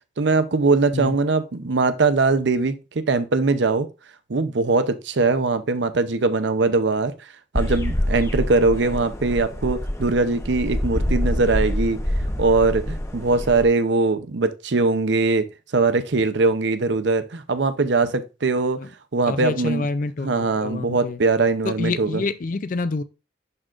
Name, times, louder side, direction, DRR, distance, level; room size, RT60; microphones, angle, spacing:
voice 1, 0.2-3.9 4.3-7.1 7.5-12.0 12.4-15.5 15.7-18.8 19.1-19.9 20.2-22.2, right 3 dB, 70° right, 0.7 m, -21 dB
sound 1, 7.6-13.6, left 1 dB, 15° left, 0.8 m, -26 dB
voice 2, 19.3-21.2 21.6-23.0, left 3 dB, 45° left, 0.4 m, -27 dB
11.0 x 3.8 x 2.5 m
head